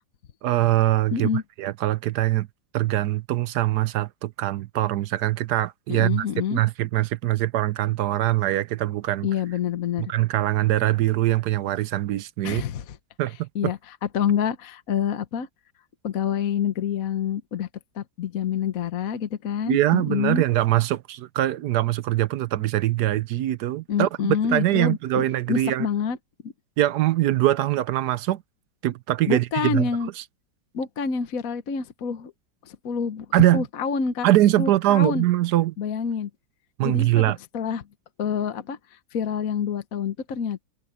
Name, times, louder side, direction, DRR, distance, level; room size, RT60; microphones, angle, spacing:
voice 1, 0.4-1.3 1.6-2.5 2.7-9.3 10.0-12.6 13.2-13.7 19.7-24.1 24.4-25.9 26.8-28.4 28.8-29.9 33.3-33.6 34.2-35.7 36.8-37.4, right 15 dB, 70° right, 1.1 m, -22 dB
voice 2, 1.1-1.4 5.9-6.6 9.2-10.1 12.4-13.0 13.5-15.5 16.0-17.7 17.9-20.4 23.9-26.2 26.4-26.5 29.3-30.1 30.7-32.3 32.6-33.3 33.5-34.3 34.6-35.2 35.8-36.3 36.8-37.9 38.2-40.6, left 7 dB, 55° left, 1.3 m, -27 dB
omnidirectional pair, 2.0 m